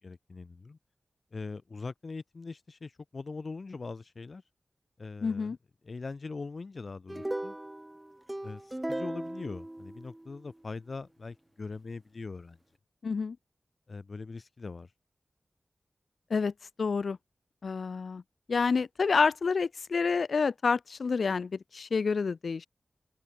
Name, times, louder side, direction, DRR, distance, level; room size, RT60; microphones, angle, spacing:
voice 1, 0.0-0.8 1.3-4.4 5.0-5.6 5.8-7.6 8.4-12.6 13.9-14.9, left 4 dB, 60° left, 5.2 m, -41 dB
voice 2, 5.2-5.6 13.0-13.4 16.3-16.5 16.8-17.2 17.6-18.2 18.5-22.7, left 5 dB, 80° left, 3.1 m, -28 dB
sound 1, 7.1-10.5, right 1 dB, 15° right, 1.9 m, -38 dB
wide cardioid pair, 60°, 0 cm